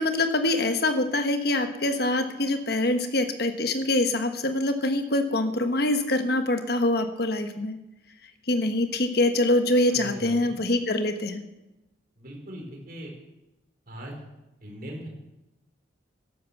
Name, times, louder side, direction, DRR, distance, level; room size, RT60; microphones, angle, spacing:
voice 1, 0.0-7.8 8.5-11.4, left 1 dB, 50° left, 7 dB, 1.3 m, -24 dB
voice 2, 9.9-10.6 12.2-13.1 13.9-14.1 14.6-15.1, equal, 45° right, 0 dB, 4.3 m, -40 dB
12.5 x 11.5 x 7.1 m, 0.97 s
head